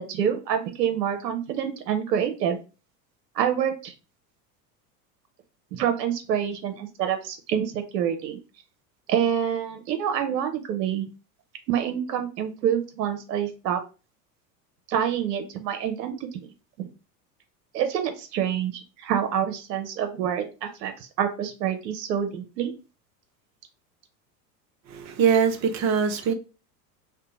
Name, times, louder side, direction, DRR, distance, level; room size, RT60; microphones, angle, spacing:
voice 1, 0.0-2.6 3.3-3.9 5.7-8.4 9.1-11.1 11.7-13.8 14.9-16.5 16.8-16.9 17.7-22.7, right 9 dB, 75° right, 0.7 m, -27 dB
voice 2, 24.9-26.3, right 7 dB, 35° right, 0.6 m, -22 dB
2.7 x 2.1 x 3.6 m
hypercardioid pair, 90°, 49 cm